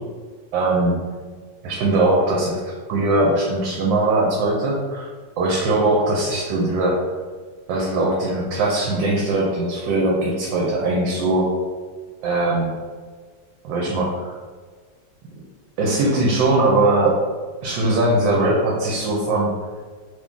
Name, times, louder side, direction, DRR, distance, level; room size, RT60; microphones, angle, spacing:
voice 1, 0.5-0.9 1.6-5.1 5.4-7.0 7.7-11.5 12.2-12.7 13.6-14.3 15.8-17.2 17.6-19.5, right 2 dB, 80° right, -2 dB, 1.3 m, -20 dB
2.9 x 2.6 x 3.6 m, 1.5 s
omnidirectional pair, 2.0 m